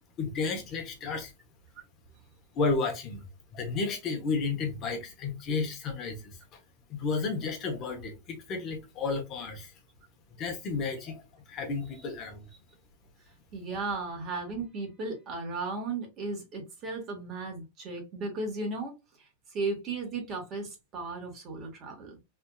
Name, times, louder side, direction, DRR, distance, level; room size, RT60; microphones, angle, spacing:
voice 1, 0.2-1.3 2.5-3.2 3.5-6.4 6.9-9.7 10.4-12.5, left 4 dB, 40° left, 1.0 m, -32 dB
voice 2, 13.5-18.9 19.5-22.2, right 3 dB, 35° right, 1.6 m, -35 dB
3.4 x 2.7 x 2.3 m
hypercardioid pair, 120°, 0 cm